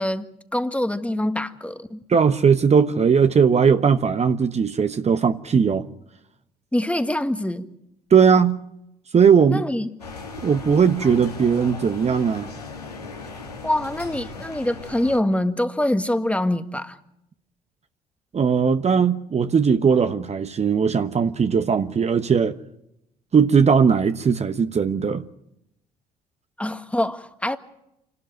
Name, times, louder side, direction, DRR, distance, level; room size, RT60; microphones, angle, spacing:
voice 1, 0.0-2.0 6.7-7.7 9.5-9.9 13.6-17.0 26.6-27.6, left 1 dB, 5° left, 1.7 m, -24 dB
voice 2, 2.1-5.9 8.1-8.6 9.1-9.6 10.4-12.5 18.3-22.6 23.3-25.2, right 6 dB, 35° right, 1.1 m, -18 dB
sound 1, 10.0-15.2, left 3 dB, 90° left, 2.3 m, -37 dB
28.5 x 12.5 x 9.2 m
figure-of-eight pair, 50°, 20 cm